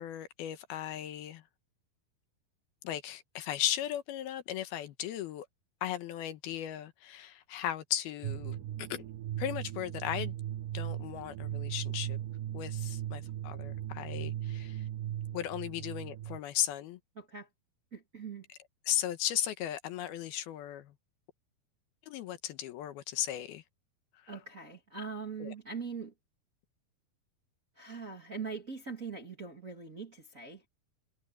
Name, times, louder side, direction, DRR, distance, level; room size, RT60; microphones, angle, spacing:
voice 1, 0.0-1.4 2.8-5.5 5.8-9.0 9.4-10.3 10.7-12.2 12.5-14.8 15.3-17.0 18.9-20.9 22.1-23.6 25.4-25.5, left 12 dB, 80° left, 3.0 m, -36 dB
sound 1, 8.2-16.4, right 12 dB, 70° right, 2.3 m, -38 dB
voice 2, 17.1-17.5 17.9-18.4 24.3-26.1 27.7-30.7, right 5 dB, 30° right, 1.7 m, -42 dB
omnidirectional pair, 4.5 m